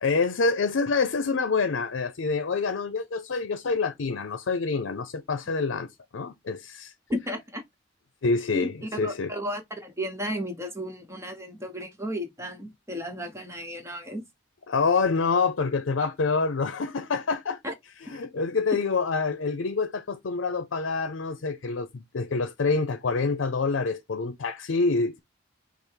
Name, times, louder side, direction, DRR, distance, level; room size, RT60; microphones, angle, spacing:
voice 1, 0.0-5.9 6.1-6.9 8.2-9.3 14.7-17.6 18.0-25.2, left 4 dB, 80° left, 0.6 m, -26 dB
voice 2, 7.1-7.6 8.5-14.2 17.6-17.7 18.1-18.2, equal, 15° right, 1.0 m, -34 dB
5.4 x 2.1 x 4.6 m
head